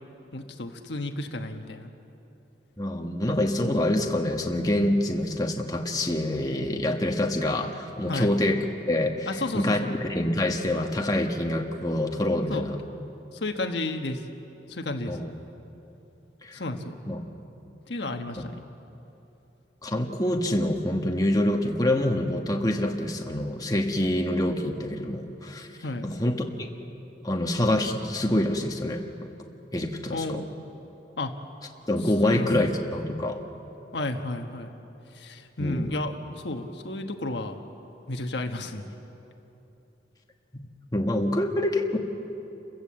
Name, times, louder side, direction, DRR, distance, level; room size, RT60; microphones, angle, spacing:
voice 1, 0.3-1.9 8.1-8.3 9.3-9.9 12.5-12.7 13.3-14.2 14.7-15.2 16.5-16.9 17.9-18.6 25.8-26.0 30.1-30.5 31.2-31.3 32.2-32.5 33.9-34.7 35.1-37.6 38.1-38.8, left 2 dB, 75° left, 5 dB, 1.3 m, -32 dB
voice 2, 2.8-12.8 15.1-15.3 16.4-16.6 17.1-17.2 18.4-18.5 19.8-25.7 26.0-26.7 27.2-29.3 29.7-30.4 31.9-33.4 35.6-35.9 40.5-42.0, left 1 dB, 20° left, 2 dB, 1.3 m, -26 dB
29.5 x 15.5 x 7.6 m, 3.0 s
head